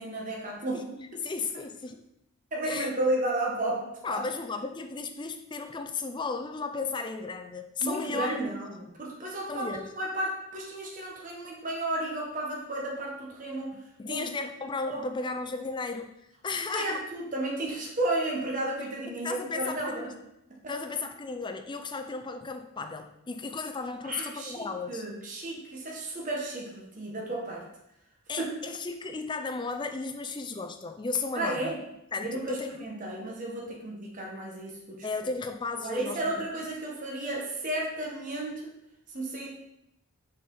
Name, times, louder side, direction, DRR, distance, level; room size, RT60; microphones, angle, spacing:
voice 1, 0.0-0.8 2.5-4.2 7.8-13.8 14.0-14.2 14.9-15.1 16.7-20.1 24.0-27.6 28.4-28.6 31.3-31.8 32.2-35.1 35.8-38.7 39.1-39.5, right 1 dB, 35° right, -2 dB, 1.2 m, -33 dB
voice 2, 0.7-2.0 2.6-2.9 4.0-8.5 9.5-9.9 14.0-16.1 16.4-17.0 19.2-20.2 20.7-25.1 28.3-31.7 32.1-32.9 35.0-36.2, left 4 dB, 20° left, 6 dB, 0.4 m, -34 dB
6.5 x 4.2 x 3.9 m, 0.83 s
head